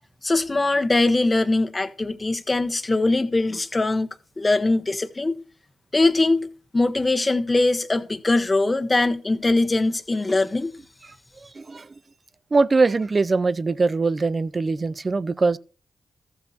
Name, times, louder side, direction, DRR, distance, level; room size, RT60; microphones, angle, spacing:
voice 1, 0.2-4.1 4.4-5.4 5.9-10.7, left 2 dB, 30° left, 1.2 m, -22 dB
voice 2, 11.6-11.9 12.5-15.6, right 3 dB, 45° right, 0.5 m, -21 dB
14.0 x 7.7 x 2.9 m
supercardioid pair, 40°, 0 cm